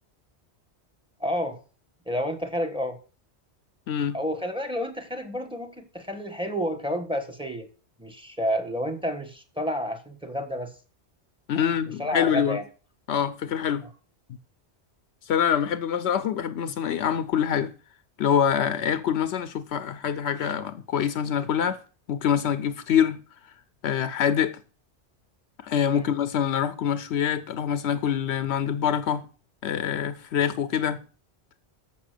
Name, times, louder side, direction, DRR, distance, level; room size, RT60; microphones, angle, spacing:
voice 1, 1.2-1.6 2.1-3.0 4.1-7.7 8.0-10.7 12.0-12.6 25.9-26.1, equal, 5° right, 1.2 m, -30 dB
voice 2, 11.5-12.6 13.1-13.9 15.3-17.7 18.2-21.8 22.1-23.2 23.8-24.6 25.6-29.3 29.6-31.0, left 8 dB, 75° left, 0.9 m, -25 dB
7.0 x 6.0 x 6.5 m
omnidirectional pair, 1.1 m